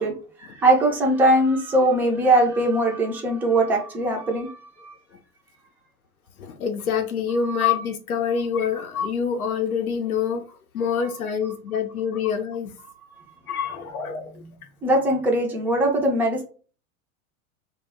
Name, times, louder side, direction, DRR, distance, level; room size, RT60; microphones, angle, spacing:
voice 1, 0.0-4.9 7.5-7.6 13.2-13.3 14.8-16.4, right 1 dB, 5° right, 0.4 m, -21 dB
voice 2, 6.4-12.7 13.5-14.4, left 7 dB, 85° left, 0.6 m, -26 dB
2.2 x 2.0 x 3.4 m
hypercardioid pair, 100°, 42 cm